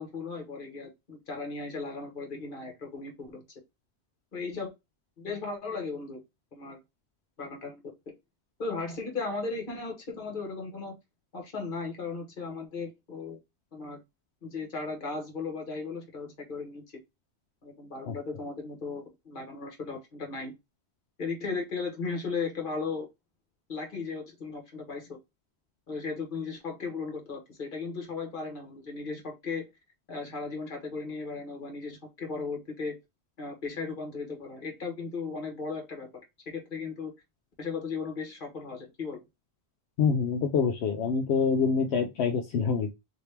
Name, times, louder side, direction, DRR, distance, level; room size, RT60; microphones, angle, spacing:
voice 1, 0.0-3.4 4.3-4.7 5.2-6.2 6.5-6.8 7.4-7.8 8.6-11.0 11.3-13.4 13.7-14.0 14.4-16.8 17.6-20.5 21.2-23.1 23.7-25.2 25.9-29.6 30.1-33.0 33.4-36.1 36.5-37.1 37.6-39.2, left 4 dB, 55° left, 2 dB, 1.4 m, -36 dB
voice 2, 40.0-42.9, left 5 dB, 80° left, 3 dB, 0.9 m, -26 dB
2.9 x 2.9 x 3.3 m, 0.21 s
omnidirectional pair, 1.1 m